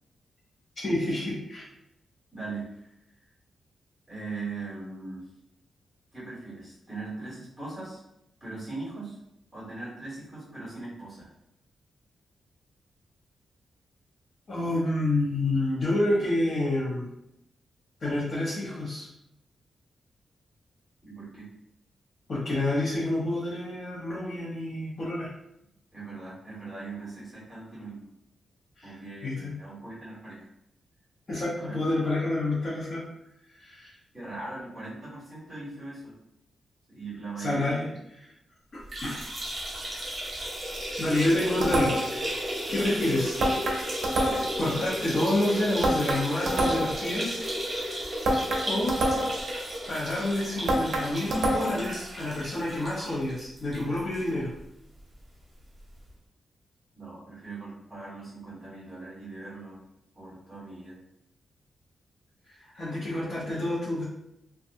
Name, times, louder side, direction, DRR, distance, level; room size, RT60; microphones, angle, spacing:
voice 1, 0.8-1.7 14.5-17.1 18.0-19.1 22.3-25.3 28.8-28.9 29.2-29.5 31.3-33.0 33.6-33.9 37.4-37.9 39.0-39.2 41.0-42.2 42.7-43.4 44.6-47.4 47.9-48.2 48.7-49.0 49.9-54.5 62.5-64.0, left 1 dB, 40° left, -8 dB, 0.7 m, -28 dB
voice 2, 2.3-2.9 4.1-5.3 6.1-8.0 8.4-9.2 9.5-11.3 21.0-21.5 25.9-28.1 28.8-30.5 31.6-31.8 34.1-36.1 36.9-37.9 56.9-59.8 60.1-61.0, right 3 dB, ahead, -8 dB, 1.4 m, -40 dB
sound 1, 38.8-54.2 54.6-54.7 55.0-55.1 56.1-56.2, equal, 35° right, 0.9 m, -34 dB
sound 2, 41.6-42.2 43.4-44.6 45.8-47.0 48.2-49.5 50.7-51.9, right 1 dB, 85° right, 0.5 m, -26 dB
2.6 x 2.2 x 2.6 m, 0.82 s
wide cardioid pair, 140°, 0 cm